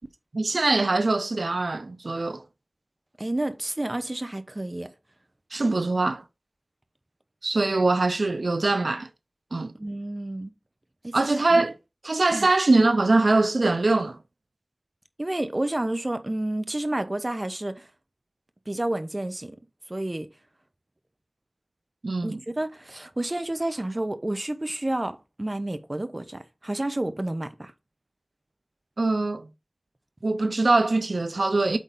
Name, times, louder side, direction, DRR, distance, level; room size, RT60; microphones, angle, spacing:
voice 1, 0.3-2.4 5.5-6.2 7.4-9.1 9.5-9.7 11.1-11.7 12.0-14.2 22.0-22.4 29.0-29.5 30.2-31.8, right 2 dB, 85° right, 0.4 m, -22 dB
voice 2, 3.2-4.9 9.8-10.5 11.0-11.3 12.3-12.5 15.2-17.9 18.7-19.6 19.9-20.3 22.2-27.7, right 1 dB, 40° right, 0.9 m, -30 dB
8.3 x 4.0 x 3.8 m
wide cardioid pair, 45°, 0 cm